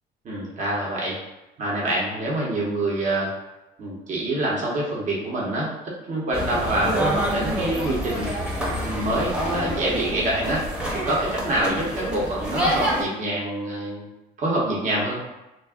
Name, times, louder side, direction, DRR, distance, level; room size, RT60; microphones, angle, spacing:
voice 1, 0.2-1.2 1.6-3.3 3.8-8.3 8.8-10.6 11.0-14.1 14.4-15.2, right 1 dB, 45° right, -4 dB, 0.9 m, -26 dB
sound 1, 6.3-13.0, equal, 5° right, 0.7 m, -27 dB
2.4 x 2.2 x 3.5 m, 0.99 s
cardioid pair, 110°, 17 cm